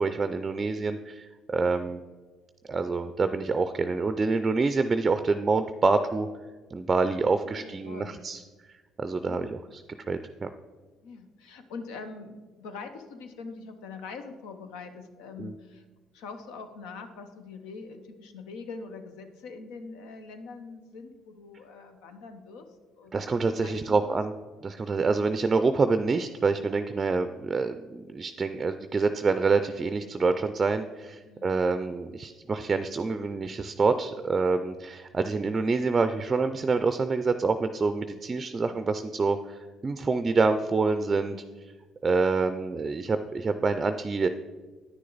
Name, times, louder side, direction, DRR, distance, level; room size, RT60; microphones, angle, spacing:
voice 1, 0.0-2.0 2.7-6.3 6.7-8.4 9.0-9.6 10.1-10.5 15.4-15.5 23.1-24.3 24.6-41.4 42.0-44.3, right 4 dB, 30° right, 10 dB, 0.4 m, -26 dB
voice 2, 7.4-8.2 9.2-9.5 11.0-15.9 16.1-22.7 23.0-24.2 31.3-31.5 38.5-38.8 41.1-41.5, left 4 dB, 85° left, 7 dB, 0.8 m, -43 dB
9.4 x 6.4 x 4.0 m, 1.3 s
supercardioid pair, 70°, 0 cm